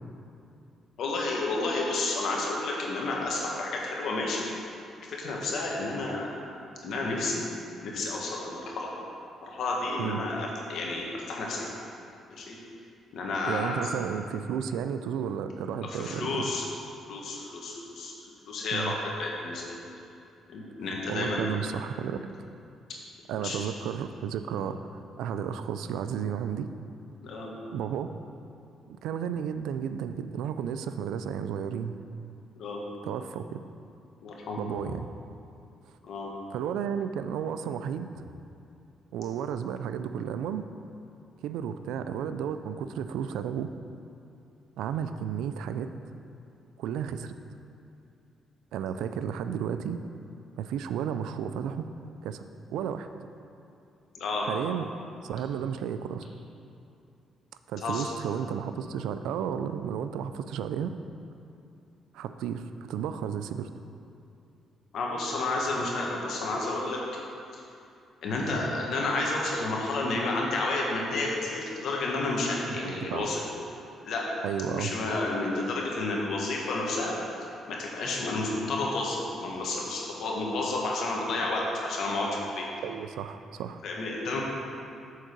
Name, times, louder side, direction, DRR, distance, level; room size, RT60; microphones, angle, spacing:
voice 1, 1.0-4.5 5.1-6.3 6.8-7.4 7.8-8.9 9.4-11.7 12.3-12.6 13.1-13.9 15.9-16.6 17.1-18.1 18.5-19.8 20.5-21.5 23.3-23.6 27.2-27.5 32.6-32.8 34.2-34.6 36.0-36.3 54.1-54.5 57.8-58.0 64.9-67.0 68.2-73.4 74.0-74.3 74.7-77.2 77.7-82.6 83.8-84.4, left 2 dB, 70° left, -2 dB, 1.5 m, -31 dB
voice 2, 13.5-16.5 18.7-19.0 21.1-22.3 23.3-26.7 27.7-28.1 28.9-32.0 33.0-33.6 34.6-35.1 36.5-38.1 39.1-40.7 41.4-43.7 44.8-45.9 46.8-47.3 48.7-50.0 50.6-51.8 52.2-52.4 52.7-53.1 54.4-54.9 55.2-56.3 57.7-60.9 62.1-63.7 72.7-73.3 74.4-74.9 82.8-83.8, right 8 dB, 85° right, 10 dB, 0.3 m, -33 dB
6.4 x 4.7 x 6.6 m, 2.6 s
cardioid pair, 90°, 0 cm